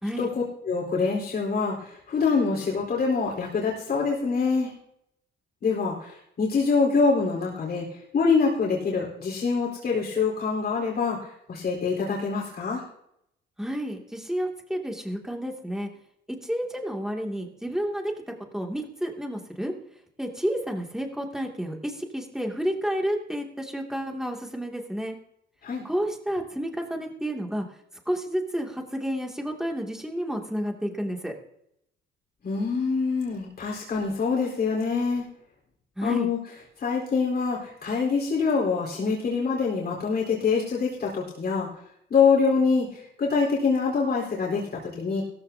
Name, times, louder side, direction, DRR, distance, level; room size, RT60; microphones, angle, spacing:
voice 1, 0.2-4.7 5.6-12.8 25.6-25.8 32.4-35.2 36.0-36.4 36.8-41.7 42.1-45.2, left 5 dB, 55° left, -3 dB, 4.3 m, -25 dB
voice 2, 13.6-15.9 16.3-18.1 18.5-19.7 20.2-25.2 25.8-27.8 28.1-31.3 36.0-36.3, equal, 5° right, 1 dB, 2.6 m, -30 dB
16.0 x 14.5 x 2.9 m, 0.75 s
cardioid pair, 90°, 20 cm